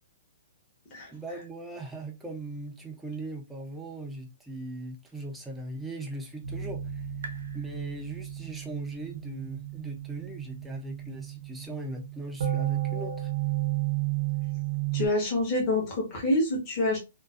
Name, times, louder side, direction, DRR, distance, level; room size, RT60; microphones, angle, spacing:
voice 1, 1.1-13.3, right 2 dB, 5° right, 0.4 m, -39 dB
sound 1, 6.4-15.1, right 13 dB, 65° right, 0.6 m, -33 dB
voice 2, 14.9-17.0, left 1 dB, 25° left, 0.8 m, -26 dB
2.3 x 2.3 x 2.3 m
hypercardioid pair, 165°, 0 cm